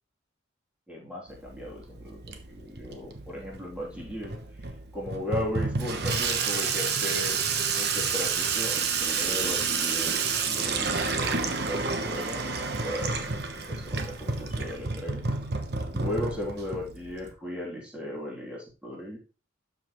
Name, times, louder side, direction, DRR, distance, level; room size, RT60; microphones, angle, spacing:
voice 1, 0.9-4.4 4.6-7.4 7.7-10.2 10.5-13.2 13.7-15.2 15.9-19.2, left 1 dB, 5° right, -4 dB, 3.1 m, -36 dB
Water tap faucet / Sink (filling or washing), 1.3-17.3, right 5 dB, 55° right, 1.1 m, -30 dB
12.5 x 5.4 x 3.1 m, 0.34 s
head